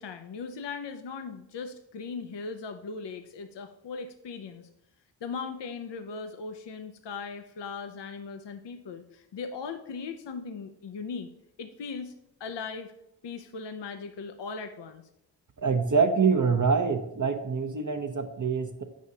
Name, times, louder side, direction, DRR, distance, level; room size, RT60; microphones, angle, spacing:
voice 1, 0.0-4.7 5.2-11.3 11.6-12.1 12.4-12.9 13.2-15.0, left 5 dB, 65° left, 8 dB, 0.6 m, -38 dB
voice 2, 15.6-18.8, right 5 dB, 45° right, 5 dB, 0.7 m, -25 dB
8.5 x 6.2 x 2.7 m, 0.85 s
cardioid pair, 40°, 45 cm